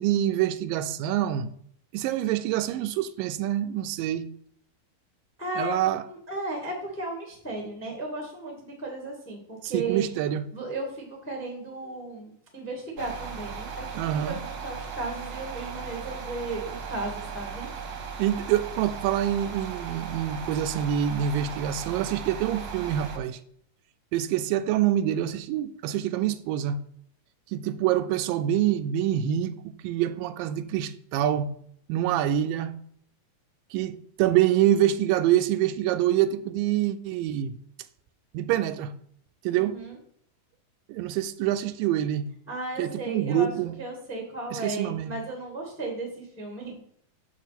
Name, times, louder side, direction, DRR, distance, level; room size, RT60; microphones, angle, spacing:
voice 1, 0.0-1.5 1.9-4.3 5.6-6.0 9.6-10.5 14.0-14.4 18.2-23.4 24.1-26.8 27.5-29.5 29.8-31.6 31.9-32.8 33.7-37.5 38.3-38.9 39.4-39.8 40.9-42.3 42.8-43.8 44.5-45.1, right 11 dB, 85° right, 2.2 m, -26 dB
voice 2, 5.4-9.4 9.7-10.0 10.5-13.9 14.1-17.7 39.5-39.9 42.5-43.5 43.8-46.8, right 2 dB, 10° left, 0.5 m, -35 dB
sound 1, 13.0-23.2, right 6 dB, 65° right, 1.6 m, -37 dB
6.9 x 6.2 x 4.1 m
omnidirectional pair, 4.0 m